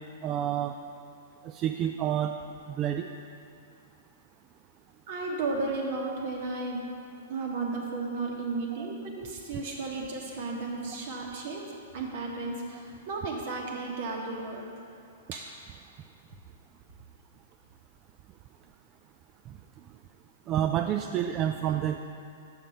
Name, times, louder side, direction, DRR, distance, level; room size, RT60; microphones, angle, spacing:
voice 1, 0.2-0.8 1.4-2.4 2.7-3.1 8.8-8.9 20.5-22.1, right 10 dB, 35° right, 5 dB, 0.3 m, -29 dB
voice 2, 5.1-6.9 7.3-11.7 11.9-14.8 15.3-15.5, right 3 dB, 55° right, 0 dB, 1.5 m, -34 dB
6.6 x 6.1 x 5.6 m, 2.5 s
hypercardioid pair, 115°, 0 cm